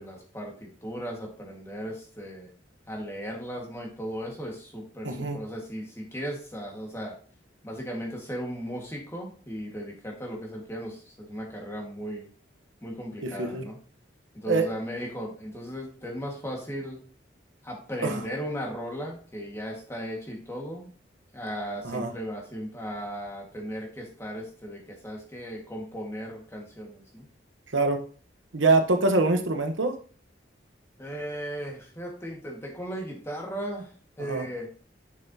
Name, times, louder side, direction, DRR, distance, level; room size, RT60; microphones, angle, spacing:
voice 1, 0.0-2.5 2.9-7.1 7.6-12.3 12.8-13.8 14.3-17.0 17.6-20.9 21.3-27.3 31.0-33.9 34.2-34.7, equal, 15° left, 0 dB, 1.6 m, -36 dB
voice 2, 5.0-5.4 13.2-13.7 14.5-14.6 18.0-18.2 21.8-22.1 27.7-28.0 28.5-30.0 34.2-34.5, right 3 dB, 90° right, 6 dB, 0.9 m, -24 dB
6.7 x 6.5 x 2.7 m, 0.42 s
head